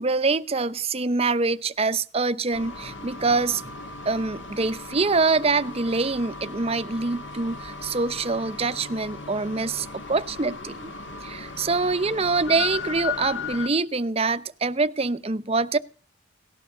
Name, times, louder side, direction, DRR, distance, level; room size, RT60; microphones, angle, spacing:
voice 1, 0.0-3.7 4.1-10.9 11.2-15.8, right 3 dB, 30° right, 12 dB, 0.7 m, -25 dB
sound 1, 2.5-13.7, left 5 dB, 65° left, 1.9 m, -37 dB
18.0 x 12.0 x 6.6 m, 0.43 s
head